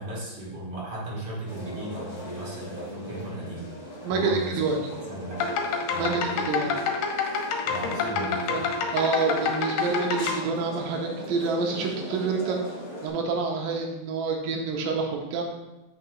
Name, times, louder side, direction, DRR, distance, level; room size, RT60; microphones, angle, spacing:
voice 1, 0.0-3.7 4.1-4.6 5.1-5.5 5.9-6.5 7.7-8.7, right 2 dB, 45° right, -7 dB, 2.2 m, -35 dB
sound 1, 1.5-13.1, equal, 45° left, 2.1 m, -39 dB
voice 2, 4.0-4.8 5.9-6.7 8.1-8.7 8.9-12.6 13.0-15.4, right 4 dB, 80° right, 1 dB, 2.5 m, -28 dB
sound 2, 5.3-10.3, left 5 dB, 80° left, 2.3 m, -27 dB
8.5 x 5.9 x 2.3 m, 1.0 s
omnidirectional pair, 4.1 m